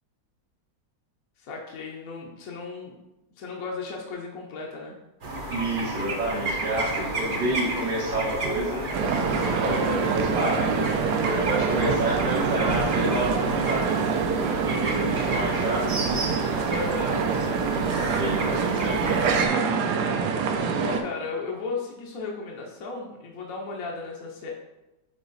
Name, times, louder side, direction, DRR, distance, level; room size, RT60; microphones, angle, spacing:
voice 1, 1.4-2.9 3.4-5.0 9.7-10.1 16.7-17.3 20.8-24.5, left 3 dB, 60° left, -1 dB, 1.1 m, -34 dB
sound 1, 5.2-19.5, right 2 dB, 45° right, 0.7 m, -31 dB
voice 2, 5.5-8.8 9.4-11.0 11.3-14.0 14.6-16.3 17.1-17.8 18.1-19.3, right 1 dB, 85° right, -8 dB, 2.1 m, -29 dB
sound 2, 8.9-21.0, right 5 dB, 70° right, 1.1 m, -26 dB
8.9 x 3.0 x 3.9 m, 0.99 s
omnidirectional pair, 2.0 m